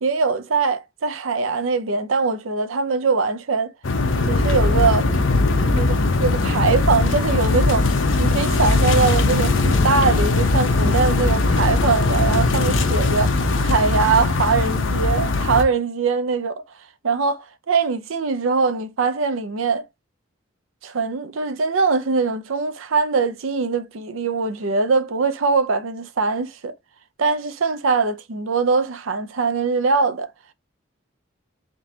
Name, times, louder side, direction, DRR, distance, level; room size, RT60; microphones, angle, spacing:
voice 1, 0.0-3.7 4.3-5.1 5.7-7.9 8.2-13.3 13.7-16.6 17.0-19.8 20.8-26.7 27.2-30.3, right 4 dB, 90° right, 0.6 m, -22 dB
sound 1, 3.8-15.6, left 3 dB, 75° left, 0.8 m, -19 dB
3.8 x 3.7 x 2.8 m
head